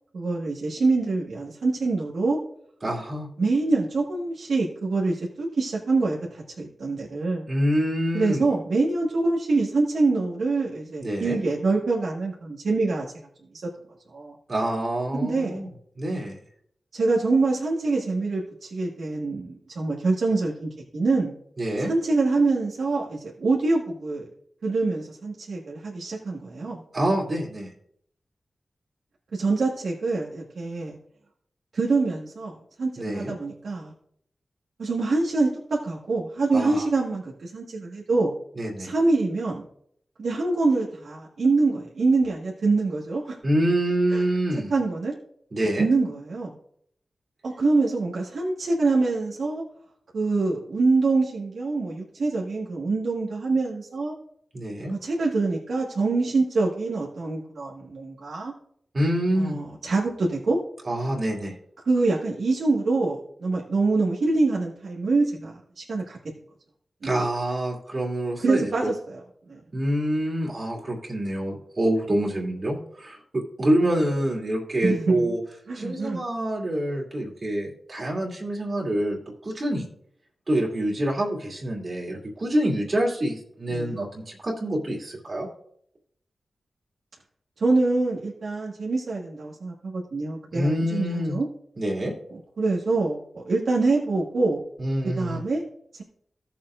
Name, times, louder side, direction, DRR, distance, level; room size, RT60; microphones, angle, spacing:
voice 1, 0.1-2.4 3.4-7.5 8.1-13.1 13.5-13.7 14.1-14.3 15.1-15.6 16.9-21.3 21.8-24.3 24.6-26.8 29.3-31.0 31.7-33.9 34.8-38.3 38.8-39.6 40.2-43.4 44.1-44.2 44.7-45.1 45.8-46.6 47.4-49.6 50.1-54.1 55.0-58.5 59.4-60.6 61.8-66.2 67.0-67.1 68.4-69.2 69.5-69.6 74.8-75.3 75.7-76.2 83.7-84.0 87.6-91.5 92.6-94.6 95.0-95.6, right 3 dB, 85° right, -4 dB, 1.5 m, -25 dB
voice 2, 2.8-3.3 7.5-8.4 11.0-11.4 14.5-15.7 16.0-16.4 21.6-21.9 26.9-27.7 33.0-33.3 36.5-36.9 38.6-38.9 43.4-44.7 45.5-45.9 54.5-54.9 58.9-59.6 60.9-61.5 67.0-68.9 69.7-75.4 75.7-79.9 80.5-85.5 90.5-91.4 91.8-92.1 94.8-95.4, right 1 dB, 45° right, -2 dB, 2.4 m, -26 dB
16.5 x 7.1 x 2.5 m, 0.68 s
wide cardioid pair, 125°, 0 cm